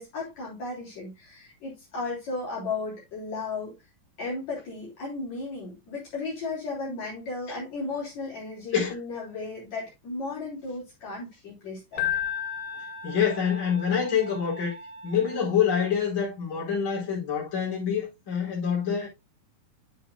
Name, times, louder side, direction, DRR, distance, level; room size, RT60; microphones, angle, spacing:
voice 1, 0.0-3.7 4.2-12.0, left 3 dB, 50° left, 4.7 m, -35 dB
sound 1, 11.9-15.6, right 3 dB, 35° right, 5.7 m, -44 dB
Keyboard (musical), 12.0-13.8, left 11 dB, 75° left, 2.0 m, -32 dB
voice 2, 13.0-14.7 15.0-19.1, left 7 dB, 35° left, 5.0 m, -26 dB
10.5 x 7.5 x 2.3 m
omnidirectional pair, 4.1 m